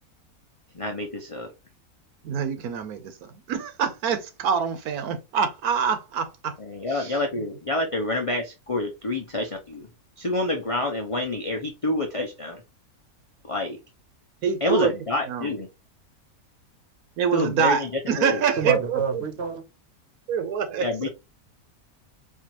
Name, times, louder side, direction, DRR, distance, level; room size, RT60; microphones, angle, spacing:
voice 1, 0.7-1.5 6.6-9.9 10.2-12.6 13.5-13.8 14.6-15.7 17.3-18.4 20.8-21.1, left 2 dB, 50° left, 0.4 m, -28 dB
voice 2, 2.2-6.6 6.9-7.1 14.4-14.9 15.3-15.5 17.2-19.2 20.3-21.1, right 7 dB, 85° right, 1.3 m, -26 dB
voice 3, 18.6-19.6, right 5 dB, 55° right, 0.9 m, -27 dB
4.5 x 2.4 x 2.9 m
omnidirectional pair, 1.6 m